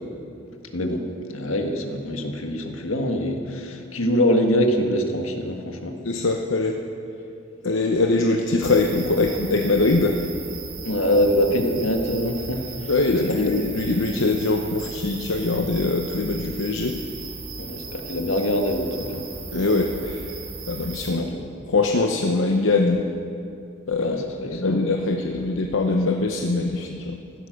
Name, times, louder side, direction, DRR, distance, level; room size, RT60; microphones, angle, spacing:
voice 1, 0.7-6.0 10.8-13.6 17.6-19.3 21.1-21.4 24.0-24.8, equal, 80° left, 4 dB, 1.6 m, -24 dB
voice 2, 6.0-6.8 7.6-10.2 12.9-17.1 19.5-20.4 20.7-21.3 21.7-23.0 23.9-27.2, left 3 dB, 65° left, 2 dB, 0.9 m, -22 dB
sound 1, 8.6-21.1, right 4 dB, 75° right, 2.9 m, -37 dB
15.0 x 12.5 x 6.4 m, 2.6 s
head